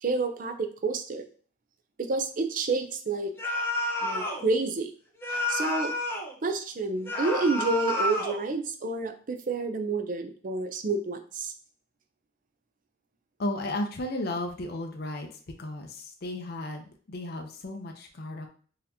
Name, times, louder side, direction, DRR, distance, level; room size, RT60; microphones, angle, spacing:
voice 1, 0.0-1.2 2.0-3.3 4.0-4.9 5.5-5.9 6.4-11.5, right 3 dB, 45° right, 7 dB, 0.4 m, -29 dB
sound 1, 3.4-4.4 5.2-6.3 7.0-8.4, left 1 dB, 10° left, 0.7 m, -29 dB
voice 2, 13.4-15.3 15.6-18.5, left 1 dB, 55° left, 3 dB, 0.5 m, -34 dB
4.0 x 2.8 x 2.7 m, 0.43 s
head